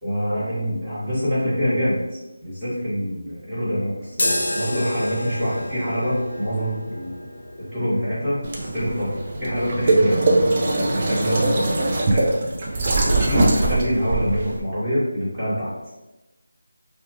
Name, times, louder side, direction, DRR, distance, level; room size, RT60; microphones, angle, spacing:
voice 1, 0.0-2.0 2.4-7.2 7.7-10.2 10.8-15.7, equal, 15° right, -14 dB, 1.3 m, -25 dB
sound 1, 4.1-11.9, left 1 dB, 55° left, 0.5 m, -32 dB
sound 2, 8.4-14.6, right 2 dB, 30° right, 0.4 m, -21 dB
2.7 x 2.1 x 2.8 m, 1.0 s
figure-of-eight pair, 170°, 0 cm